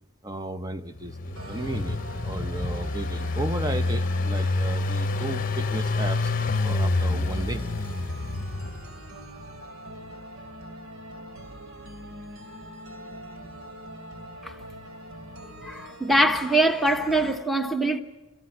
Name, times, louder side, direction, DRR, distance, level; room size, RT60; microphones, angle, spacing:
voice 1, 0.2-6.3 6.6-7.6, right 2 dB, 15° right, 0.7 m, -34 dB
Engine, 1.0-9.0, left 2 dB, 40° left, 0.8 m, -27 dB
sound 1, 1.4-17.4, equal, 85° right, 3.2 m, -43 dB
voice 2, 15.6-18.0, right 1 dB, ahead, 1.1 m, -23 dB
28.5 x 14.0 x 9.7 m
head